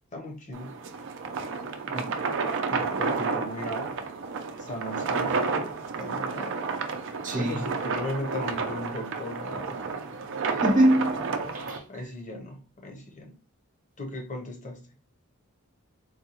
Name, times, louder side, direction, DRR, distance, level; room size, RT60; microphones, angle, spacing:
voice 1, 0.1-0.7 2.7-4.0 4.6-5.6 6.0-6.7 7.4-9.8 11.9-13.3 14.0-14.8, left 1 dB, 35° left, 0.9 m, -37 dB
sound 1, 0.5-11.8, right 4 dB, 60° right, 0.5 m, -31 dB
voice 2, 7.2-7.6 10.5-11.3 11.5-12.0, right 1 dB, 35° right, 0.8 m, -24 dB
3.9 x 2.3 x 2.9 m
head